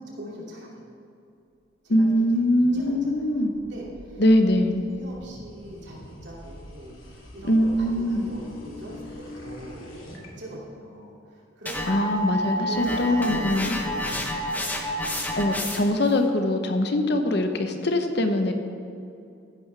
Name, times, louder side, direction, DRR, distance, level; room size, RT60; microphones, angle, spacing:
voice 1, 0.1-0.8 1.8-4.2 4.8-9.9 10.2-12.3 12.6-15.4, equal, 60° right, -3 dB, 2.6 m, -42 dB
voice 2, 1.9-3.5 4.2-4.8 7.4-8.2 11.9-13.8 15.3-18.5, left 1 dB, 55° left, 6 dB, 0.9 m, -22 dB
sound 1, 2.2-10.3, left 1 dB, 85° left, 2.4 m, -45 dB
sound 2, 11.7-16.1, equal, 10° left, 0.9 m, -29 dB
15.0 x 10.5 x 3.4 m, 2.6 s
head